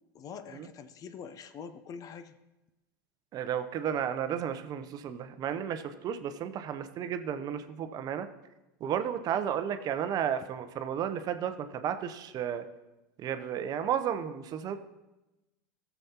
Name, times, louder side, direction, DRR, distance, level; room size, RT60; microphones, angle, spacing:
voice 1, 0.1-2.4, left 6 dB, 35° left, 11 dB, 0.6 m, -44 dB
voice 2, 3.3-8.3 8.8-12.6 13.2-14.8, right 9 dB, 40° right, 10 dB, 0.7 m, -33 dB
15.0 x 7.0 x 2.9 m, 1.0 s
hypercardioid pair, 105°, 10 cm